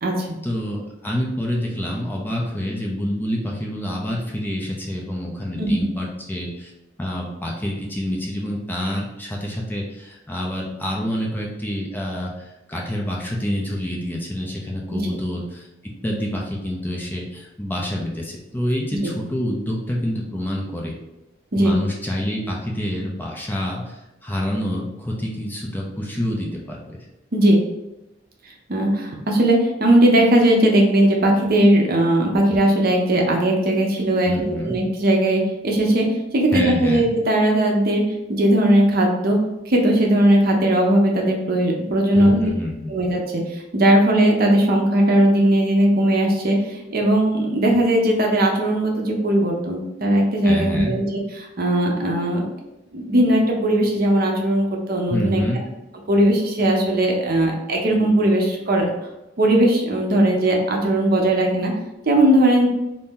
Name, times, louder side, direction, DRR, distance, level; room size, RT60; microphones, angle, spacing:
voice 1, 0.4-6.7 7.0-15.7 16.0-21.0 21.6-27.0 34.2-34.8 36.5-37.1 42.1-42.9 50.4-51.0 55.1-55.6, equal, 10° left, -2 dB, 0.5 m, -27 dB
voice 2, 28.7-36.1 36.3-38.0 38.3-39.4 39.7-42.4 42.9-52.4 52.9-55.4 56.1-58.9 59.4-61.7 62.1-62.7, right 1 dB, 50° right, 0 dB, 0.6 m, -18 dB
2.7 x 2.7 x 3.6 m, 0.94 s
head